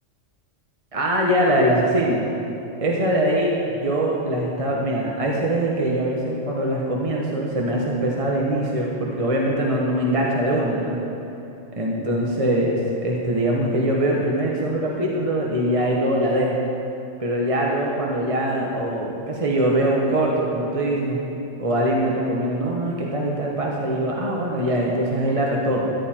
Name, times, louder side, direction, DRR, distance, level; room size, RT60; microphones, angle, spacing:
voice 1, 0.9-2.3 2.8-3.5 3.8-11.0 11.7-16.6 17.2-21.2 21.6-25.9, right 1 dB, 30° right, -3 dB, 1.2 m, -22 dB
14.0 x 11.0 x 4.4 m, 2.8 s
omnidirectional pair, 1.3 m